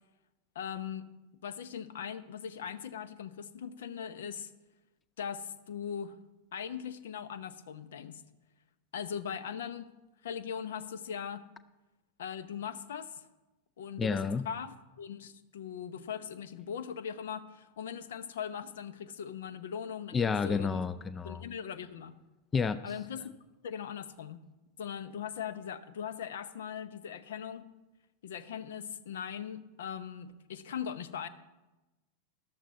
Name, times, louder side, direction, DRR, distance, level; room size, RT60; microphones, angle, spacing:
voice 1, 0.5-1.1 1.4-4.5 5.2-6.2 6.5-8.2 8.9-9.9 10.2-11.5 12.2-13.2 13.8-20.9 21.2-22.2 22.8-23.3 23.6-24.4 24.8-27.7 28.2-31.3, left 8 dB, 60° left, 15 dB, 0.7 m, -40 dB
voice 2, 14.0-14.5 20.1-21.4 22.5-22.8, left 5 dB, 20° left, 14 dB, 0.4 m, -30 dB
13.5 x 12.0 x 4.1 m, 1.1 s
figure-of-eight pair, 90°, 0 cm